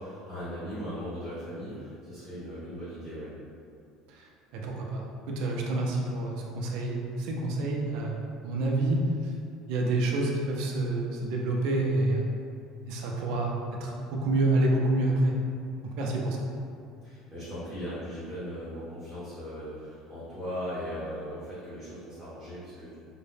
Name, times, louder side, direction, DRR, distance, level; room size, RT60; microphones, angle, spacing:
voice 1, 0.0-3.3 17.0-23.0, equal, 10° right, -13 dB, 0.7 m, -38 dB
voice 2, 4.5-8.2 8.4-9.0 9.7-12.2 12.8-15.3 15.8-16.4, right 2 dB, 65° right, -1 dB, 0.4 m, -28 dB
2.6 x 2.1 x 3.3 m, 2.4 s
cardioid pair, 165°, 0 cm